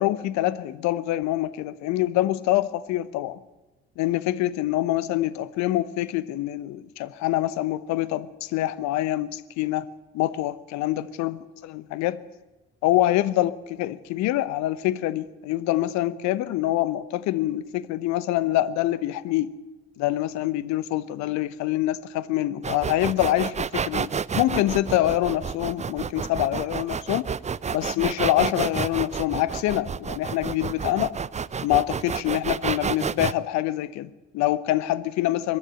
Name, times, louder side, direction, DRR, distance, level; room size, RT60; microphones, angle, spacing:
voice 1, 0.0-3.4 4.0-9.9 10.1-11.4 11.6-12.2 12.8-19.5 20.0-24.1 24.4-27.3 27.7-31.2 31.6-35.6, left 14 dB, 60° left, 0.9 m, -25 dB
sound 1, 22.6-33.3, right 6 dB, 20° right, 0.6 m, -29 dB
22.5 x 12.5 x 9.3 m
figure-of-eight pair, 45°, 31 cm